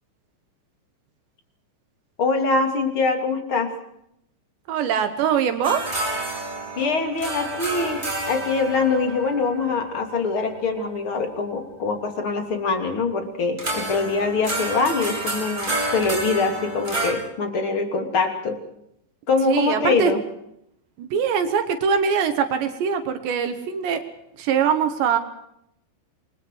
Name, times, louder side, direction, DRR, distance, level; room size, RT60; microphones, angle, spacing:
voice 1, 2.2-3.7 6.8-18.6 19.3-20.2, left 4 dB, 30° left, 5 dB, 3.2 m, -24 dB
voice 2, 4.7-5.8 19.5-20.1 21.0-24.0 24.4-25.2, right 7 dB, 75° right, 7 dB, 3.7 m, -22 dB
sound 1, 5.6-11.0 13.6-17.1, right 1 dB, 10° right, 4.7 m, -29 dB
29.0 x 22.5 x 4.7 m, 0.77 s
omnidirectional pair, 5.3 m